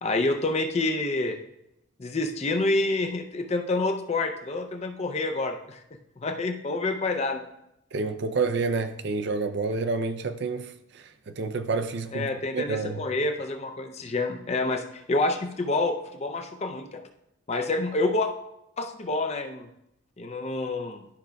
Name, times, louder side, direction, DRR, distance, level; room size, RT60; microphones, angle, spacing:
voice 1, 0.0-1.4 2.0-5.8 6.2-7.4 12.1-17.0 17.5-18.3 18.8-19.7 20.2-21.0, left 2 dB, 30° left, 6 dB, 0.5 m, -28 dB
voice 2, 7.9-13.0, right 4 dB, 55° right, 9 dB, 0.5 m, -29 dB
11.5 x 5.7 x 2.3 m, 0.82 s
head